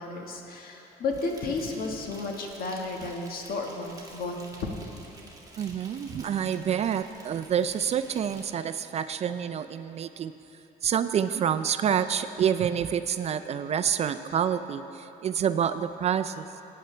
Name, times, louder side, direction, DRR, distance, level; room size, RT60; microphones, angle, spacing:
voice 1, 0.0-4.7, left 3 dB, 60° left, 1 dB, 1.5 m, -33 dB
Insect, 1.1-8.4, right 2 dB, 20° right, 1.8 m, -50 dB
voice 2, 5.6-10.3 10.8-16.5, right 8 dB, 40° right, 11 dB, 0.4 m, -28 dB
17.5 x 9.3 x 3.3 m, 3.0 s
cardioid pair, 110°, 17 cm